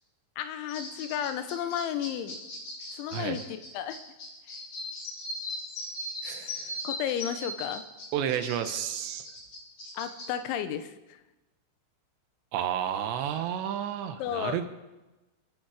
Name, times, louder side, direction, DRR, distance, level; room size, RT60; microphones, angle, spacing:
voice 1, 0.4-2.4 2.9-4.0 6.8-7.8 9.9-11.2 14.2-14.7, left 9 dB, 85° left, 11 dB, 3.2 m, -33 dB
sound 1, 0.7-10.3, left 1 dB, 35° left, 2.9 m, -39 dB
voice 2, 6.2-6.8 8.1-9.3 12.5-14.7, right 10 dB, 75° right, 8 dB, 3.0 m, -31 dB
28.0 x 9.5 x 4.8 m, 1.1 s
omnidirectional pair, 5.4 m